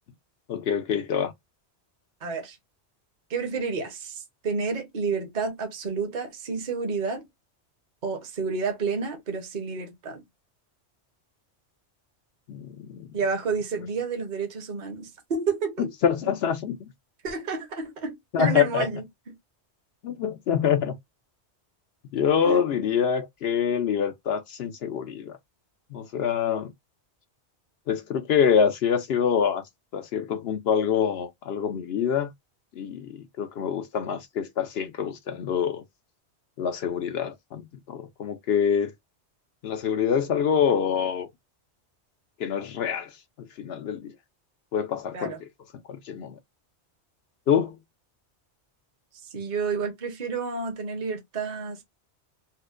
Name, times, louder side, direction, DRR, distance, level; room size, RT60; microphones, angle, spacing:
voice 1, 0.5-1.3 12.5-13.1 16.0-16.9 18.3-18.9 20.0-20.9 22.1-25.4 25.9-26.7 27.9-29.6 29.9-32.3 32.8-35.8 36.6-37.6 37.9-38.9 39.6-41.3 42.4-43.1 43.6-44.1 44.7-45.3 45.9-46.3 47.5-47.8, left 7 dB, 70° left, 0.8 m, -25 dB
voice 2, 2.2-2.6 3.3-7.2 8.0-10.2 13.1-15.9 17.2-19.0 22.4-22.6 45.1-45.4 49.3-51.8, right 4 dB, 45° right, 0.9 m, -30 dB
4.2 x 2.1 x 2.4 m
omnidirectional pair, 1.2 m